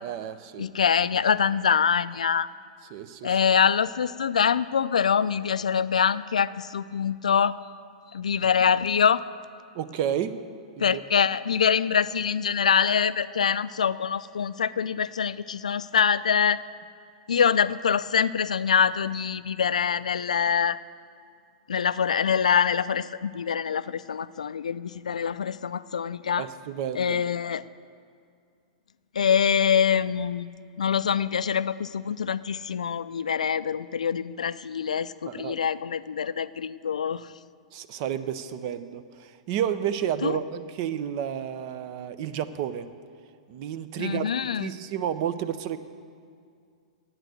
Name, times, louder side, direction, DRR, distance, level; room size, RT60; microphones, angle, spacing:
voice 1, 0.0-0.7 2.9-3.4 9.7-10.3 10.8-11.0 26.4-27.2 35.3-35.6 37.7-42.9 43.5-44.3 44.6-45.8, right 9 dB, 50° right, 13 dB, 0.6 m, -31 dB
voice 2, 0.6-2.5 3.2-7.6 8.1-9.2 10.8-16.6 17.3-20.8 21.7-26.5 27.0-27.6 29.2-30.5 30.8-37.3 40.2-40.4 44.0-44.7, left 7 dB, 90° left, 16 dB, 0.3 m, -24 dB
9.0 x 8.9 x 7.8 m, 2.2 s
hypercardioid pair, 120°, 4 cm